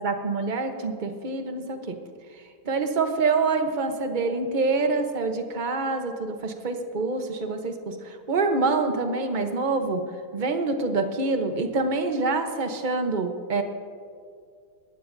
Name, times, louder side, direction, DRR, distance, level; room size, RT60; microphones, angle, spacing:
voice 1, 0.0-2.0 2.6-10.0 10.3-13.6, right 3 dB, 50° right, 6 dB, 0.5 m, -26 dB
20.5 x 16.0 x 2.7 m, 2.1 s
omnidirectional pair, 2.3 m